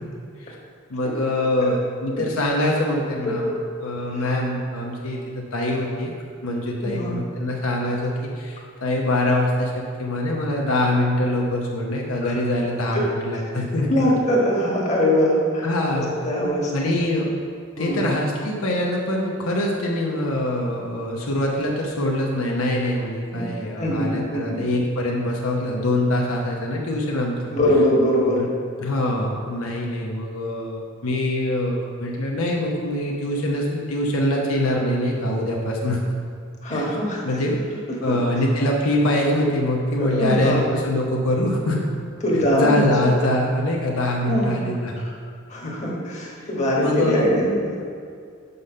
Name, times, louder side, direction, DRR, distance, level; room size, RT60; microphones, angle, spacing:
voice 1, 0.9-3.5 3.8-6.1 6.4-13.9 15.6-16.1 16.7-17.3 17.8-27.4 28.2-28.5 28.8-36.0 36.7-37.0 37.2-37.6 38.0-41.8 42.5-45.0 46.4-46.5 46.8-47.5, left 1 dB, 80° left, -1 dB, 1.0 m, -24 dB
voice 2, 3.2-3.6 4.1-4.4 6.8-7.1 12.2-12.3 12.9-13.0 13.3-13.4 13.9-15.7 15.9-16.9 17.8-18.1 23.3-23.5 23.8-24.6 27.5-28.4 36.6-37.2 38.1-38.2 40.0-40.6 42.2-42.8 44.3-44.6 45.0-45.1 45.5-47.8, equal, 35° left, -3 dB, 1.4 m, -22 dB
5.6 x 5.6 x 6.6 m, 2.2 s
head